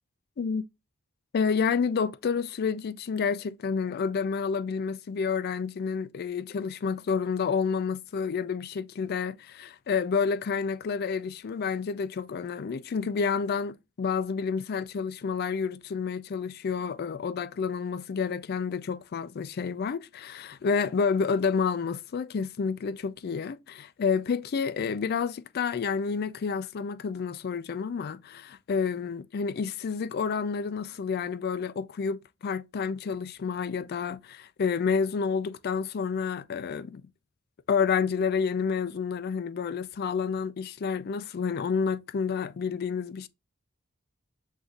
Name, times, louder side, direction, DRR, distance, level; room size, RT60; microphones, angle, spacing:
voice 1, 1.3-37.0 37.7-43.3, left 5 dB, 50° left, 0.4 m, -29 dB
7.8 x 2.7 x 2.4 m
head